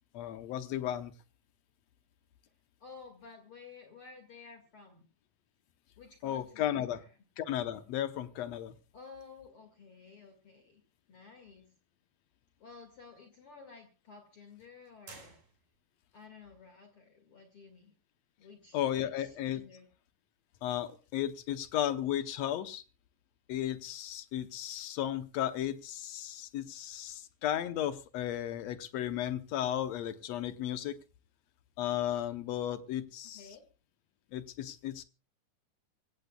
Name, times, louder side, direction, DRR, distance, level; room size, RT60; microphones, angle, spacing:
voice 1, 0.1-1.1 6.2-7.0 7.4-8.8 18.7-19.6 20.6-22.8 23.5-31.0 31.8-33.5 34.3-35.0, left 11 dB, 70° left, 1.8 m, -34 dB
voice 2, 2.8-5.1 6.0-7.1 8.9-10.8 11.1-11.7 12.6-15.4 16.1-17.9 18.4-19.9 33.3-33.6, left 5 dB, 45° left, 2.6 m, -53 dB
sound 1, 15.1-16.0, right 4 dB, 80° right, 6.1 m, -53 dB
24.0 x 16.5 x 2.3 m
omnidirectional pair, 3.7 m